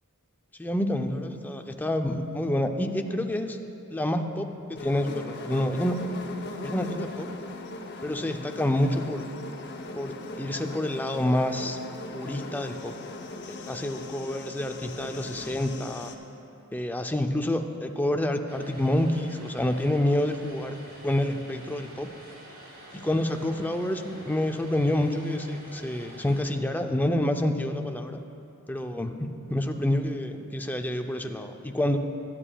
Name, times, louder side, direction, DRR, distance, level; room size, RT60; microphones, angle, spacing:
voice 1, 0.6-3.6 3.9-6.0 6.6-7.3 8.0-9.2 9.9-11.8 12.1-12.9 13.5-16.1 16.7-20.8 21.0-22.1 22.9-28.2 28.7-32.0, left 1 dB, 10° left, 5 dB, 0.5 m, -28 dB
sound 1, 4.8-16.2, left 2 dB, 55° left, 0.7 m, -39 dB
Vehicle, 18.5-26.4, right 1 dB, 45° right, 2.7 m, -47 dB
21.0 x 8.9 x 2.3 m, 2.8 s
head